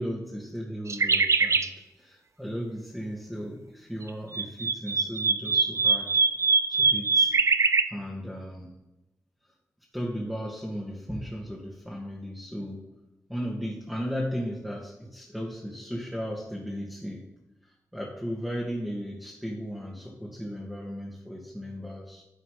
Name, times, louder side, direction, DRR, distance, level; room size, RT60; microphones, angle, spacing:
voice 1, 0.0-1.7 2.0-6.1 6.7-7.4 7.9-8.8 9.9-12.9 13.3-17.3 17.6-22.2, equal, 5° right, -3 dB, 1.9 m, -35 dB
sound 1, 0.9-1.7 4.1-7.8, right 4 dB, 55° right, 0.5 m, -23 dB
10.5 x 4.0 x 4.9 m, 0.96 s
cardioid pair, 40°, 6 cm